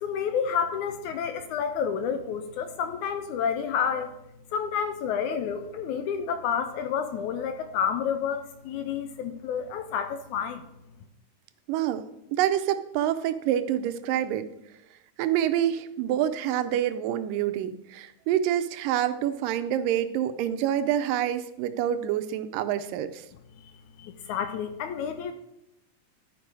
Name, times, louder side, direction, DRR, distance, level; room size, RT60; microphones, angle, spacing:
voice 1, 0.0-4.1 4.5-10.6 24.0-25.3, left 7 dB, 80° left, 8 dB, 1.9 m, -29 dB
voice 2, 11.7-12.0 12.3-14.5 15.2-23.3, right 11 dB, 90° right, 10 dB, 2.3 m, -27 dB
12.5 x 5.1 x 4.7 m, 0.82 s
omnidirectional pair, 3.8 m